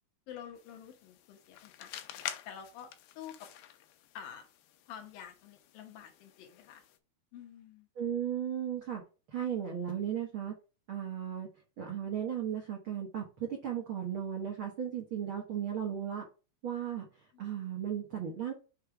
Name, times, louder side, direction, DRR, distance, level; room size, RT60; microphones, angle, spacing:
voice 1, 0.3-3.5 4.1-4.5 4.9-6.8 7.3-7.9 17.3-17.4, left 9 dB, 75° left, 4 dB, 2.7 m, -49 dB
sound 1, 0.6-7.0, left 11 dB, 90° left, 2.5 m, -48 dB
voice 2, 8.0-9.0 9.3-10.5 10.9-11.5 11.8-16.2 16.6-17.1 17.4-18.5, right 9 dB, 75° right, 0 dB, 1.2 m, -35 dB
6.6 x 3.3 x 4.8 m, 0.33 s
omnidirectional pair, 4.4 m